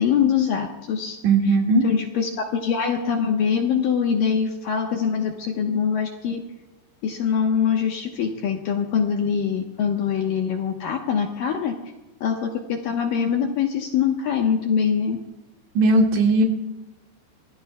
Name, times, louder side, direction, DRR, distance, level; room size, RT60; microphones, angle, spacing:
voice 1, 0.0-1.2 1.8-6.4 7.0-11.7 12.2-15.2, left 7 dB, 70° left, 1 dB, 2.3 m, -23 dB
voice 2, 1.2-1.8 15.8-16.4, right 2 dB, 75° right, 1 dB, 4.3 m, -17 dB
25.5 x 19.5 x 2.3 m, 1.0 s
omnidirectional pair, 5.2 m